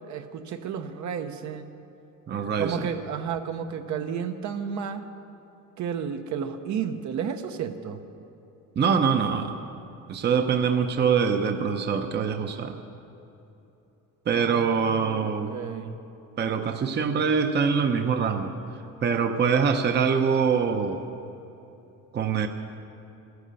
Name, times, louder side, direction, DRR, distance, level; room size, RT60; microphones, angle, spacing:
voice 1, 0.1-1.7 2.6-5.1 5.8-8.0 14.3-16.0, right 7 dB, 60° right, 7 dB, 1.0 m, -32 dB
voice 2, 2.3-2.9 8.8-9.6 10.1-12.7 14.3-15.5 16.4-18.5 19.0-21.0 22.1-22.5, right 6 dB, 30° right, 6 dB, 0.8 m, -24 dB
15.5 x 13.0 x 6.8 m, 2.9 s
cardioid pair, 145°, 33 cm